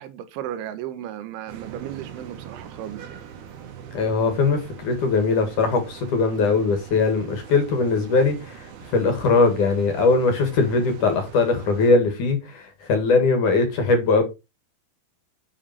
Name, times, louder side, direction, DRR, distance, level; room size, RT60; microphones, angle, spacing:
voice 1, 0.0-3.2, right 11 dB, 90° right, 3.6 m, -35 dB
sound 1, 1.5-11.9, right 8 dB, 65° right, 3.6 m, -42 dB
voice 2, 3.9-14.2, left 4 dB, 55° left, 2.8 m, -21 dB
8.6 x 6.3 x 5.9 m
omnidirectional pair, 5.3 m